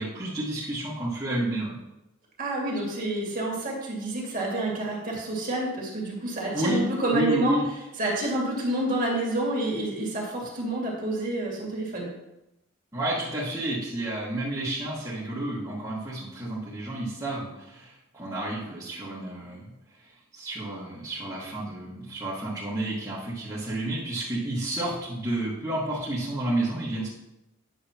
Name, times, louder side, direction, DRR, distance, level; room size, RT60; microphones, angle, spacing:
voice 1, 0.0-1.8 6.5-6.8 7.1-7.6 12.9-19.7 20.3-27.1, right 1 dB, 15° right, -10 dB, 1.5 m, -30 dB
voice 2, 2.4-7.5 8.0-12.1, right 1 dB, 40° right, -3 dB, 2.1 m, -28 dB
9.2 x 6.8 x 2.9 m, 0.92 s
head